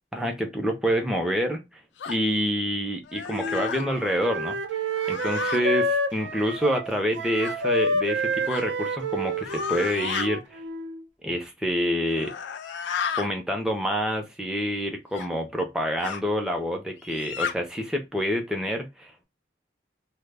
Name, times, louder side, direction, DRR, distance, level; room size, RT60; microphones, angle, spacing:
voice 1, 0.1-1.6 2.1-4.8 5.1-10.6 11.2-12.3 13.2-19.3, equal, 5° right, 0.4 m, -27 dB
sound 1, 2.0-2.2 3.0-3.9 4.9-5.6 7.4-7.6 8.5-8.7 9.4-10.3 12.0-13.3 15.1-15.3 16.0-16.2 17.0-17.5, left 7 dB, 75° left, 0.3 m, -32 dB
Wind instrument woodwind instrument, 3.3-11.0, right 1 dB, 80° right, 0.5 m, -29 dB
2.1 x 2.1 x 3.3 m
head